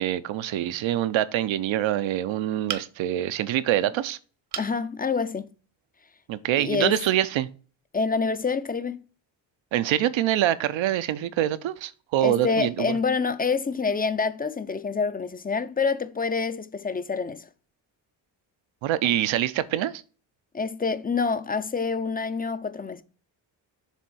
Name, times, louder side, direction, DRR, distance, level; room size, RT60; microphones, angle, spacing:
voice 1, 0.0-4.2 6.3-7.5 9.7-12.9 18.8-20.0, right 12 dB, 80° right, 0.8 m, -25 dB
sound 1, 2.7-3.2 4.5-4.8 5.3-5.4 5.8-5.9, right 8 dB, 60° right, 1.1 m, -34 dB
voice 2, 4.6-5.5 6.6-7.0 7.9-9.0 12.2-17.5 20.5-23.0, left 5 dB, 20° left, 0.5 m, -27 dB
7.1 x 3.5 x 6.2 m
cardioid pair, 100°, 46 cm